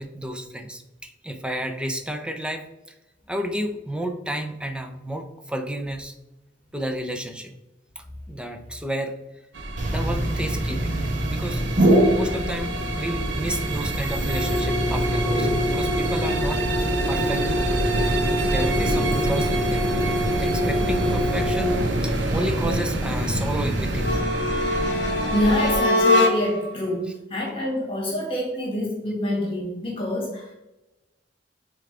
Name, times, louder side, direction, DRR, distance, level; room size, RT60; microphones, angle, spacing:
voice 1, 0.0-2.6 3.3-6.1 6.7-7.5 8.0-9.2 9.9-11.0 11.3-11.6 12.1-16.7 17.1-17.5 18.1-18.2 18.4-19.9 20.4-24.3, right 1 dB, 5° right, 5 dB, 0.6 m, -31 dB
sound 1, 9.5-25.8, right 2 dB, 85° right, 0.8 m, -28 dB
sound 2, 9.8-24.2, equal, 45° right, 1.1 m, -25 dB
sound 3, 23.9-26.7, left 1 dB, 70° left, 0.8 m, -22 dB
voice 2, 25.3-30.5, left 1 dB, 30° left, -4 dB, 2.0 m, -26 dB
9.0 x 3.7 x 3.4 m, 0.97 s
head